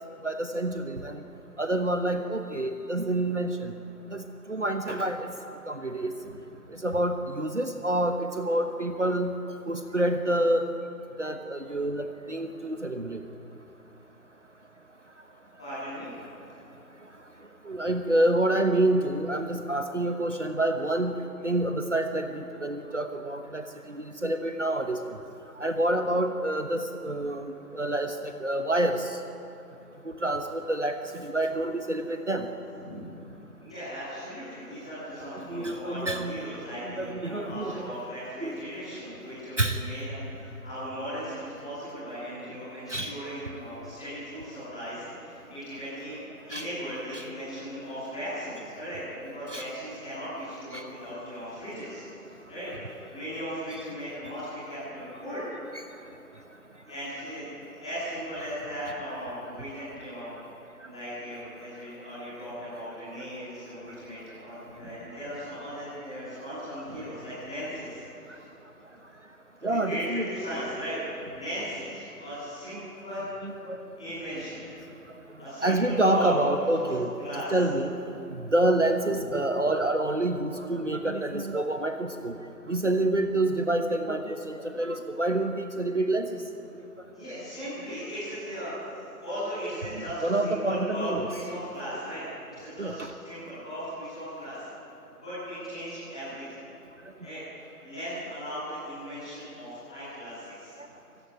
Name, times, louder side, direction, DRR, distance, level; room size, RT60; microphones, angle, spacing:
voice 1, 0.2-1.2 1.6-3.7 4.1-5.3 5.7-6.1 6.7-9.4 9.7-10.7 11.2-13.2 17.6-25.0 25.6-29.2 30.0-32.5 35.5-36.4 37.0-37.9 38.4-38.6 39.6-39.8 42.9-43.1 46.5-46.6 47.1-47.2 49.5-49.7 50.7-50.9 55.7-55.8 69.6-70.2 73.4-73.8 75.6-77.1 77.5-82.4 82.7-86.4 90.2-91.3 92.8-93.1, right 1 dB, 50° right, 6 dB, 1.2 m, -27 dB
voice 2, 15.6-16.1 32.8-33.0 33.6-52.0 52.5-52.7 53.1-55.5 56.9-60.3 60.8-68.0 69.6-70.9 71.3-73.3 73.9-74.7 75.4-76.3 76.7-76.8 77.2-77.6 87.1-94.6 95.1-96.6 97.2-97.4 97.8-100.7, equal, 5° left, -16 dB, 2.7 m, -37 dB
23.5 x 14.5 x 10.0 m, 2.7 s
figure-of-eight pair, 175°, 47 cm